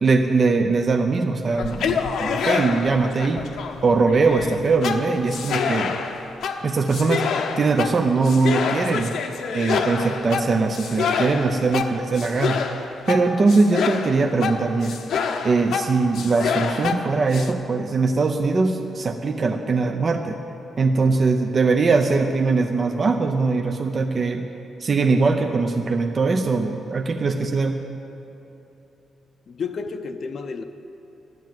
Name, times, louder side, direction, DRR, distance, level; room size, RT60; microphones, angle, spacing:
voice 1, 0.0-3.5 3.8-6.0 6.6-9.1 9.5-12.6 13.1-14.9 15.4-20.4 20.8-24.5 24.8-27.8, right 4 dB, 35° right, 5 dB, 0.7 m, -21 dB
Karate Class, 1.5-17.5, left 6 dB, 70° left, 0.9 m, -27 dB
voice 2, 29.5-30.6, left 5 dB, 45° left, 7 dB, 0.6 m, -31 dB
12.5 x 10.5 x 7.7 m, 3.0 s
cardioid pair, 140°, 0 cm